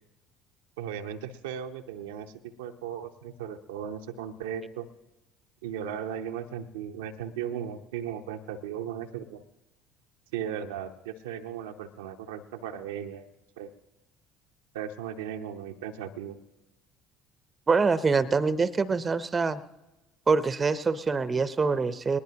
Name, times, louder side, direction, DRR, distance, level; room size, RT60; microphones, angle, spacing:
voice 1, 0.8-4.9 5.6-9.4 10.3-13.3 13.6-13.7 14.7-16.4, right 9 dB, 75° right, 5 dB, 0.7 m, -36 dB
voice 2, 17.7-19.6 20.3-22.2, right 4 dB, 30° right, 15 dB, 0.7 m, -25 dB
20.5 x 19.5 x 2.9 m, 1.0 s
figure-of-eight pair, 55°, 0 cm